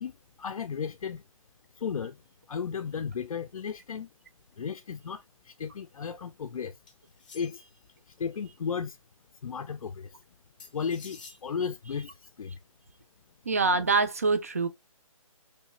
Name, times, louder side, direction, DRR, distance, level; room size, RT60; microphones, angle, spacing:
voice 1, 0.0-1.2 1.7-2.2 2.5-4.1 4.6-6.8 7.3-7.6 8.1-9.0 9.4-10.2 10.7-12.6, left 6 dB, 75° left, 0.4 m, -35 dB
sound 1, 6.9-7.8 10.6-11.4, left 4 dB, 15° left, 0.6 m, -50 dB
voice 2, 13.5-14.7, right 4 dB, 25° right, 0.4 m, -25 dB
3.2 x 2.8 x 3.0 m
hypercardioid pair, 175°, 18 cm